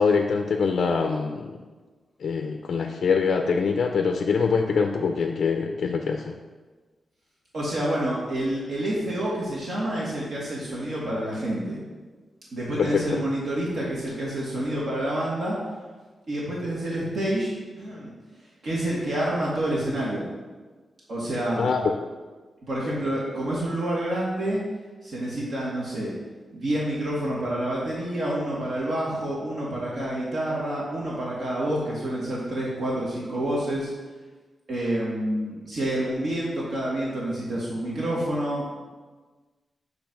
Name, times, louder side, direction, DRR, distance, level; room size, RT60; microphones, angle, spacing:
voice 1, 0.0-1.5 2.2-6.4 12.8-13.2 21.6-22.1, left 5 dB, 70° left, 3 dB, 0.5 m, -24 dB
voice 2, 7.5-11.8 12.5-15.6 16.3-18.1 18.6-20.3 21.1-21.7 22.6-24.6 25.0-26.1 26.5-33.9 34.7-38.9, right 1 dB, 65° right, -6 dB, 1.6 m, -28 dB
8.3 x 3.3 x 6.0 m, 1.3 s
wide cardioid pair, 165°, 0 cm